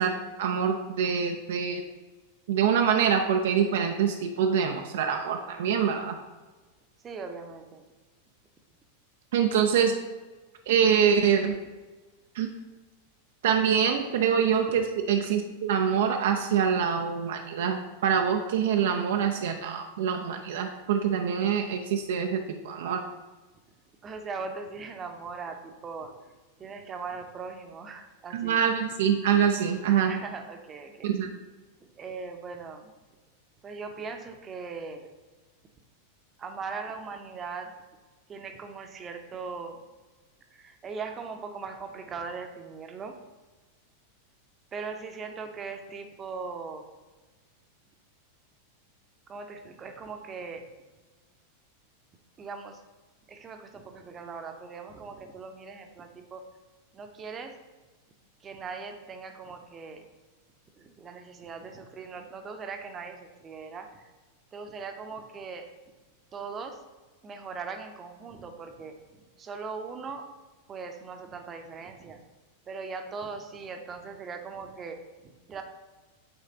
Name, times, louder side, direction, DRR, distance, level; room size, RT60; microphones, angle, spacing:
voice 1, 0.0-1.8 2.5-6.2 9.3-10.0 10.7-11.5 12.3-12.5 13.4-23.0 28.3-30.1 31.0-31.3, right 7 dB, 55° right, 4 dB, 0.4 m, -25 dB
voice 2, 7.0-7.8 24.0-26.3 26.6-28.6 30.1-31.1 32.0-32.9 33.6-35.1 36.4-37.7 38.3-39.8 40.5-43.2 44.7-46.9 49.3-50.7 52.4-52.8 53.3-56.4 56.9-57.6 58.4-60.1 60.8-64.0 64.5-65.7 66.3-66.8 67.2-69.0 69.4-70.3 70.7-72.2 72.7-75.6, right 4 dB, 25° right, 5 dB, 0.7 m, -39 dB
8.4 x 3.2 x 3.9 m, 1.2 s
figure-of-eight pair, 90°, 0 cm